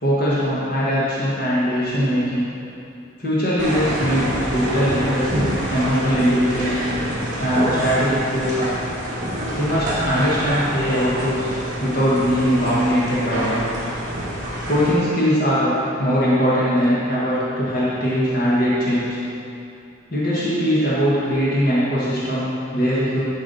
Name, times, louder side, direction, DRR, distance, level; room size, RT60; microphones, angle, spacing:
voice 1, 0.0-2.4 3.2-6.8 7.4-8.7 9.5-13.6 14.7-19.2 20.1-23.2, equal, 45° left, -9 dB, 1.5 m, -21 dB
sound 1, 3.6-14.9, equal, 35° right, 2.0 m, -27 dB
11.5 x 4.9 x 4.2 m, 2.6 s
head